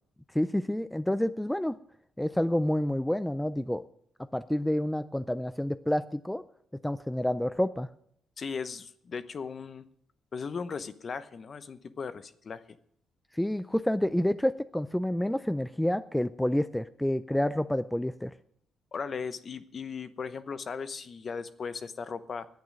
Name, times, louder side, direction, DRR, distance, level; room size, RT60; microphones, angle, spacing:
voice 1, 0.3-1.7 2.2-3.8 4.3-6.4 6.8-7.9 13.3-18.3, left 1 dB, 5° left, 12 dB, 0.4 m, -28 dB
voice 2, 8.4-9.8 10.3-12.8 18.9-22.5, left 5 dB, 40° left, 12 dB, 0.9 m, -37 dB
10.5 x 8.7 x 9.4 m, 0.69 s
cardioid pair, 115°, 0 cm